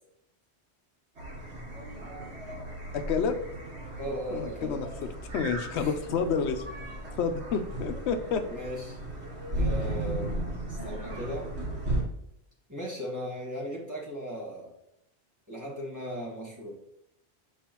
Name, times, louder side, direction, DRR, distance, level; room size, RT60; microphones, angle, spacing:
sound 1, 1.2-12.0, right 1 dB, 80° right, 1.5 m, -35 dB
voice 1, 2.9-3.3 4.3-4.9 5.3-6.6 7.2-8.4, left 6 dB, 90° left, 9 dB, 0.9 m, -29 dB
voice 2, 4.0-4.8 5.7-6.0 8.5-9.0 9.5-10.3 10.7-11.5 12.7-14.7 15.5-16.7, equal, 15° right, -4 dB, 1.8 m, -37 dB
7.3 x 4.7 x 3.0 m, 0.80 s
omnidirectional pair, 1.1 m